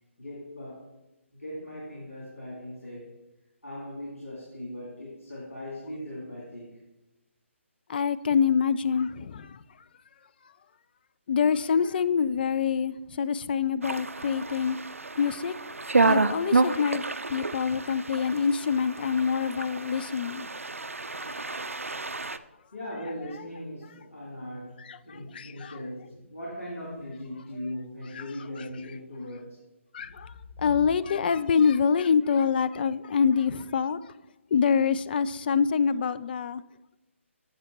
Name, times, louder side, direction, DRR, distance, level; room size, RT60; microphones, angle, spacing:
voice 1, 0.2-0.9 1.3-3.1 3.6-6.8 22.7-29.6 30.7-30.9, left 1 dB, 85° left, 2.9 m, -39 dB
voice 2, 7.9-9.6 11.3-14.8 15.2-15.5 16.0-17.0 17.3-20.5 21.3-21.8 24.8-25.8 28.2-28.3 29.9-30.3 30.6-34.1 34.5-36.6, left 6 dB, 45° left, 0.3 m, -26 dB
sound 1, 13.8-22.4, right 3 dB, 90° right, 0.4 m, -29 dB
8.0 x 6.3 x 4.4 m
figure-of-eight pair, 145°, 7 cm